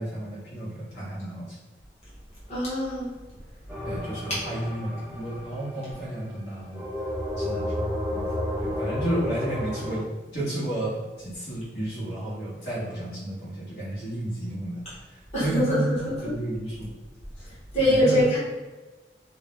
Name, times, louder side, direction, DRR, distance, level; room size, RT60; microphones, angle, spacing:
voice 1, 0.0-1.5 3.8-6.9 7.4-8.3 8.6-14.8 15.4-16.9 17.8-18.2, right 1 dB, 65° left, -7 dB, 1.0 m, -32 dB
voice 2, 2.5-3.1 15.3-16.3 17.7-18.4, equal, 35° left, -9 dB, 0.9 m, -23 dB
sound 1, 3.7-6.1 6.7-10.0, left 1 dB, 10° right, 0.3 m, -31 dB
2.5 x 2.0 x 3.1 m, 1.2 s
head